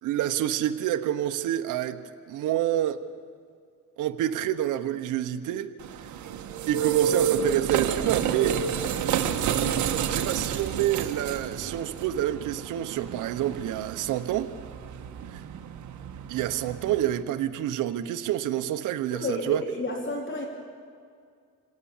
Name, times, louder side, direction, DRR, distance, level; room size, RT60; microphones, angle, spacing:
voice 1, 0.0-2.0 2.3-3.0 4.0-5.7 6.0-6.1 6.7-8.6 10.1-14.5 15.3-15.4 16.3-19.6, right 12 dB, 90° right, 9 dB, 1.1 m, -28 dB
sound 1, 5.8-17.2, right 8 dB, 70° right, 1.5 m, -30 dB
voice 2, 19.1-20.5, left 1 dB, 40° left, 1 dB, 4.0 m, -31 dB
26.5 x 18.0 x 7.3 m, 2.2 s
cardioid pair, 90°, 30 cm